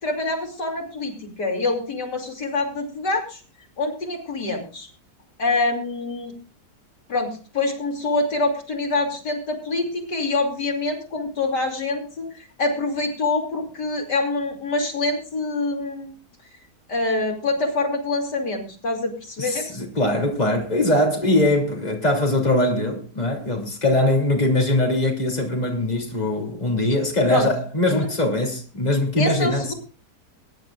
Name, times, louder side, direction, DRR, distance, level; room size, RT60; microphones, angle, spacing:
voice 1, 0.0-3.4 3.8-4.9 5.4-6.3 7.1-16.1 16.9-19.7 27.3-27.5 27.9-28.1 29.2-29.7, left 2 dB, 80° left, 3.5 m, -25 dB
voice 2, 19.4-29.7, left 1 dB, 25° left, 3.0 m, -21 dB
22.5 x 10.5 x 2.4 m
omnidirectional pair, 1.8 m